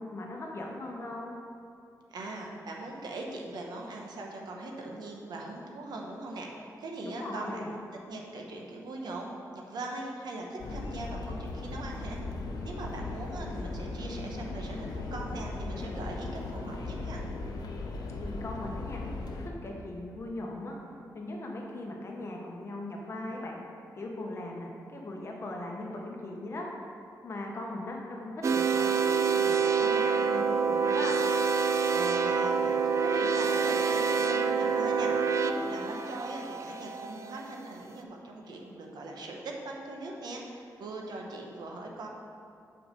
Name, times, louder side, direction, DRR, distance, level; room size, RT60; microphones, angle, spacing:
voice 1, 0.0-1.3 7.0-7.7 18.2-19.0 19.3-20.7 21.1-23.6 23.9-26.7 27.2-31.2, left 2 dB, 40° left, -1 dB, 1.1 m, -39 dB
voice 2, 2.1-7.8 8.1-12.2 12.6-17.3 31.9-42.1, right 2 dB, 80° right, 0 dB, 1.0 m, -40 dB
sound 1, 10.6-19.5, left 2 dB, 75° left, 0.7 m, -37 dB
sound 2, 28.4-37.4, right 5 dB, 45° right, 0.4 m, -27 dB
5.9 x 4.9 x 6.5 m, 2.5 s
wide cardioid pair, 160°, 7 cm